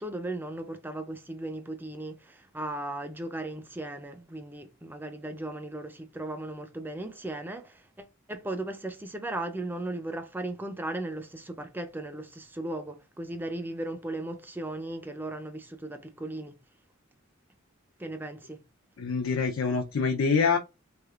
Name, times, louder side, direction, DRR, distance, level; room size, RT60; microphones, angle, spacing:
voice 1, 0.0-16.6 18.0-18.6, right 2 dB, 10° right, 0.4 m, -37 dB
voice 2, 19.0-20.6, left 5 dB, 80° left, 0.5 m, -25 dB
3.5 x 3.3 x 2.3 m
head